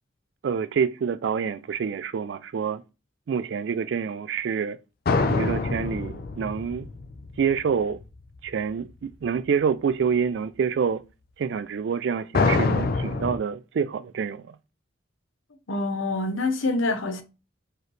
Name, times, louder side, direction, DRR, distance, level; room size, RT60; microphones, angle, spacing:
voice 1, 0.4-2.8 3.3-4.8 5.3-6.9 7.4-8.0 8.4-11.0 11.4-14.6, right 6 dB, 60° right, 0.3 m, -27 dB
sound 1, 5.1-8.1 12.3-13.4, left 3 dB, 50° left, 0.4 m, -25 dB
voice 2, 15.7-17.2, left 2 dB, 85° left, 0.8 m, -26 dB
4.8 x 3.1 x 3.1 m
head